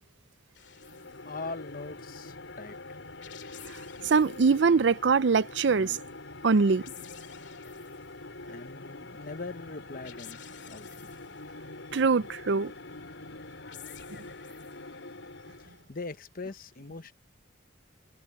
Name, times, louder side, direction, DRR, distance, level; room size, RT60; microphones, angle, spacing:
sound 1, 0.5-1.2 3.0-4.6 6.4-8.1 9.9-11.5 13.3-14.9, left 10 dB, 70° left, 2.4 m, -51 dB
sound 2, 0.6-15.9, left 2 dB, 90° left, 6.3 m, -45 dB
voice 1, 1.2-3.0 8.5-10.4 10.7-11.1 15.6-17.1, left 3 dB, 50° left, 0.9 m, -41 dB
voice 2, 4.0-6.0 6.4-6.8 11.9-12.7, right 5 dB, 65° right, 0.5 m, -23 dB
head